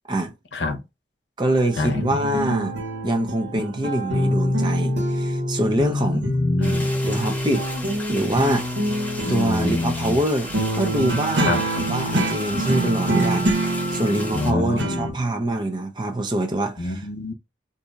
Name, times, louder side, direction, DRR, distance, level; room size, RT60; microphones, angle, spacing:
voice 1, 0.5-0.8 1.8-2.0 5.8-6.9 9.2-10.2 11.4-11.6 14.3-15.2 16.8-17.3, left 2 dB, 80° left, 0.7 m, -26 dB
voice 2, 1.4-2.7 3.0-6.3 7.1-7.7 8.1-8.7 9.0-11.6 11.9-17.1, right 1 dB, 25° right, 0.5 m, -24 dB
sound 1, 1.5-6.0 6.2-15.1, equal, 85° right, 1.3 m, -25 dB
sound 2, 6.6-14.5, left 1 dB, 10° left, 0.8 m, -36 dB
Wind instrument woodwind instrument, 10.4-14.4, left 2 dB, 50° right, 1.1 m, -36 dB
4.1 x 2.7 x 2.3 m
head